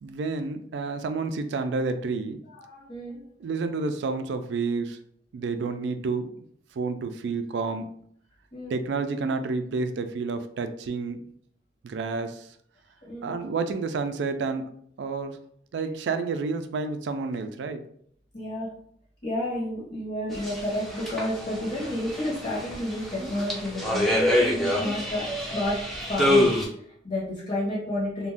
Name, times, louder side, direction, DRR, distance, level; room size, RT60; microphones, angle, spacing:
voice 1, 0.0-2.4 3.4-5.0 5.3-6.4 6.8-7.9 8.7-11.2 11.8-12.5 13.2-14.7 15.0-15.4 15.7-17.8, right 4 dB, 75° right, 8 dB, 0.3 m, -29 dB
voice 2, 2.5-3.2 8.5-8.8 13.0-13.4 18.3-18.7 19.2-25.8 26.1-28.3, left 1 dB, 40° left, -5 dB, 0.7 m, -31 dB
sound 1, 20.3-26.7, left 1 dB, ahead, 0.5 m, -26 dB
2.5 x 2.2 x 3.4 m, 0.65 s
head